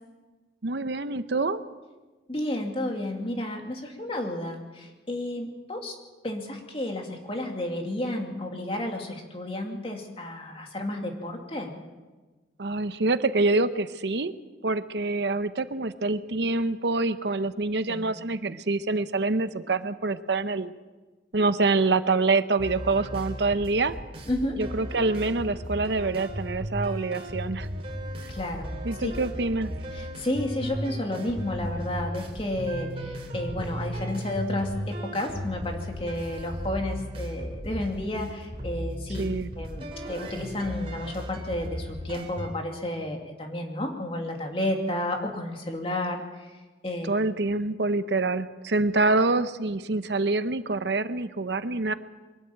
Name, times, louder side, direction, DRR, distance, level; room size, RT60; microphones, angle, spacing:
voice 1, 0.6-1.6 12.6-14.3 14.6-20.7 21.3-24.0 24.6-27.7 28.8-29.7 39.2-39.5 47.1-51.9, right 3 dB, 70° right, 12 dB, 0.8 m, -26 dB
voice 2, 2.3-5.9 6.2-11.7 17.9-18.0 24.3-24.6 28.3-28.7 29.0-29.1 29.9-39.2 39.5-46.5 46.8-47.1, left 1 dB, 30° left, 2 dB, 2.6 m, -31 dB
sound 1, 22.6-42.5, equal, 35° right, 3.3 m, -36 dB
23.5 x 12.5 x 8.9 m, 1.2 s
head